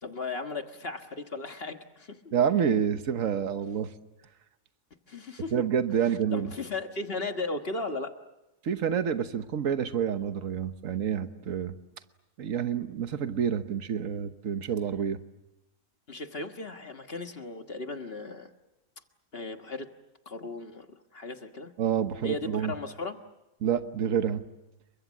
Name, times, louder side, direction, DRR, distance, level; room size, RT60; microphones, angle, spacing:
voice 1, 0.0-2.2 5.1-5.5 6.3-8.1 16.1-18.5 19.3-19.9 20.2-21.7 22.2-23.2, left 3 dB, 50° left, 6 dB, 1.7 m, -36 dB
voice 2, 2.3-3.9 5.5-6.5 8.6-11.8 12.4-15.2 21.8-22.7 23.6-24.4, right 8 dB, 80° right, 9 dB, 1.5 m, -28 dB
29.5 x 23.5 x 7.4 m, 0.97 s
omnidirectional pair, 1.4 m